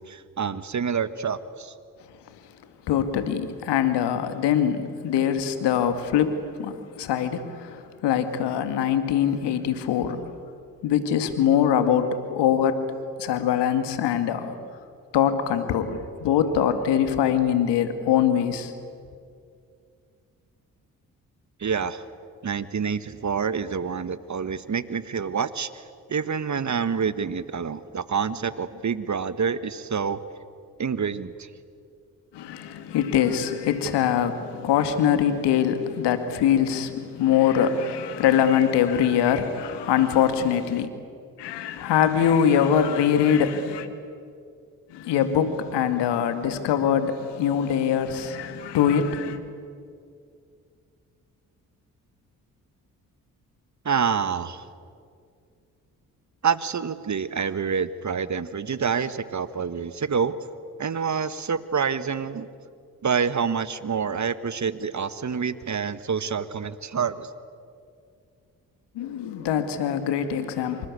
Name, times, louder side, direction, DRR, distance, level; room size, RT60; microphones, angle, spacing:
voice 1, 0.0-1.7 21.6-22.0 22.4-25.7 26.1-30.2 30.8-31.5 53.8-54.6 56.4-60.4 60.8-62.5 63.0-67.3, right 6 dB, 45° right, 1.5 m, -27 dB
voice 2, 2.9-10.3 10.8-12.8 13.2-14.5 15.1-18.7 32.3-40.9 41.4-43.9 44.9-49.4 68.9-70.9, left 9 dB, 75° left, 2.1 m, -23 dB
26.5 x 25.5 x 8.4 m
hypercardioid pair, 45°, 41 cm